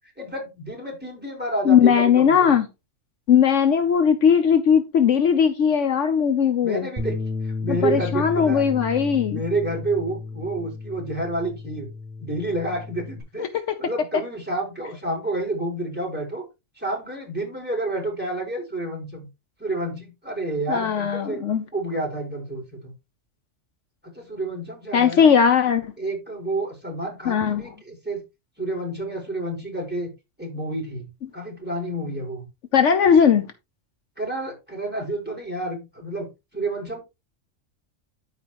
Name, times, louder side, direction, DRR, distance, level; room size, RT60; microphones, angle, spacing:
voice 1, 0.2-2.5 6.6-8.6 9.3-11.9 12.2-13.5 13.8-16.4 16.8-19.3 19.6-21.4 21.7-22.9 24.0-25.3 26.0-28.2 28.6-30.1 30.4-32.5 34.2-36.3 36.5-37.0, right 2 dB, 5° right, 4.5 m, -29 dB
voice 2, 1.6-2.7 3.3-6.9 7.7-9.4 13.4-13.5 20.7-21.6 24.9-25.9 27.3-27.6 32.7-33.5, left 7 dB, 70° left, 1.1 m, -18 dB
Bass guitar, 7.0-13.2, left 3 dB, 25° right, 4.4 m, -33 dB
13.0 x 4.9 x 3.0 m
omnidirectional pair, 1.3 m